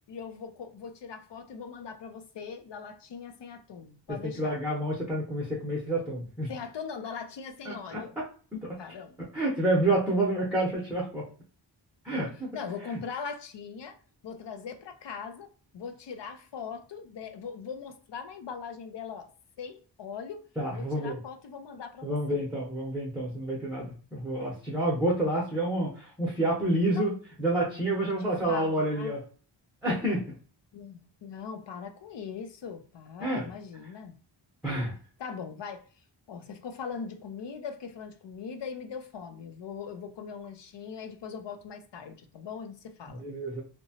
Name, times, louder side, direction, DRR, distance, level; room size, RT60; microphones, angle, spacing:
voice 1, 0.1-4.6 6.5-8.2 8.8-9.2 12.5-14.0 14.2-19.3 19.6-20.4 20.7-22.5 26.9-27.1 28.0-28.1 28.5-29.2 30.7-34.1 35.2-35.8 36.3-43.3, left 6 dB, 70° left, 0.5 m, -40 dB
voice 2, 4.2-6.5 7.6-8.2 8.5-8.8 9.2-11.2 12.0-12.6 20.6-21.2 22.0-27.1 27.4-29.2 29.8-30.4 33.2-33.4 34.6-34.9 43.1-43.6, right 1 dB, 5° right, 0.7 m, -29 dB
2.8 x 2.2 x 2.7 m
wide cardioid pair, 105°, 44 cm